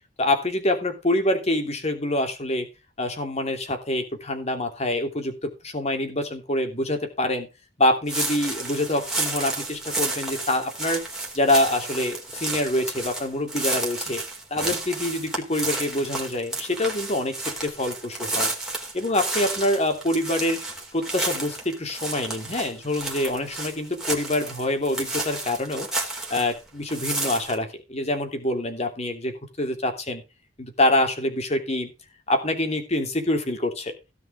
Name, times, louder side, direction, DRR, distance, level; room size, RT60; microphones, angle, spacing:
voice 1, 0.2-2.7 3.0-7.5 7.8-11.0 11.3-14.2 14.5-17.4 17.6-18.5 18.9-20.6 20.9-25.9 26.3-30.2 30.6-31.9 32.3-33.9, left 1 dB, 35° left, 6 dB, 2.9 m, -25 dB
sound 1, 8.1-26.6 26.9-27.6, right 2 dB, 5° right, 3.6 m, -31 dB
17.0 x 5.9 x 5.0 m, 0.28 s
head